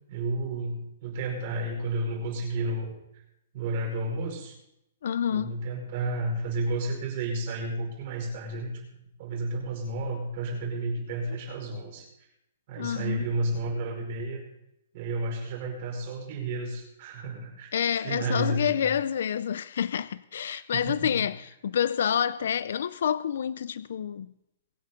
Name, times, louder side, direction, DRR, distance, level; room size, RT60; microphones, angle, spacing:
voice 1, 0.1-2.9 3.5-4.5 5.3-8.8 9.2-12.0 12.7-14.4 14.9-17.7 18.0-18.9 20.5-21.3, right 2 dB, 35° right, 5.2 m, -32 dB
voice 2, 5.0-5.6 12.8-13.3 17.7-24.3, left 8 dB, 60° left, 0.4 m, -28 dB
23.5 x 9.4 x 3.8 m
hypercardioid pair, 175°, 0 cm